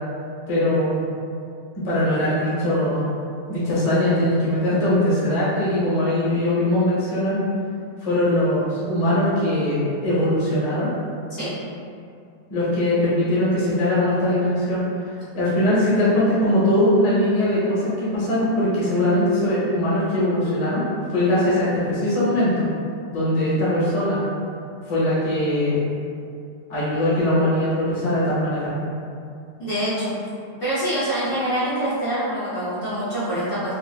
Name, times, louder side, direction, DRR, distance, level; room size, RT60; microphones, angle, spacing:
voice 1, 0.5-1.0 1.8-3.1 3.5-7.4 8.0-10.9 12.5-14.8 15.3-20.8 21.1-22.7 23.1-24.2 24.8-25.9 26.7-28.7, left 1 dB, 25° left, -10 dB, 0.8 m, -21 dB
voice 2, 29.6-30.1 30.6-33.8, right 1 dB, 55° left, -12 dB, 1.0 m, -25 dB
4.8 x 2.0 x 2.3 m, 2.4 s
omnidirectional pair, 1.9 m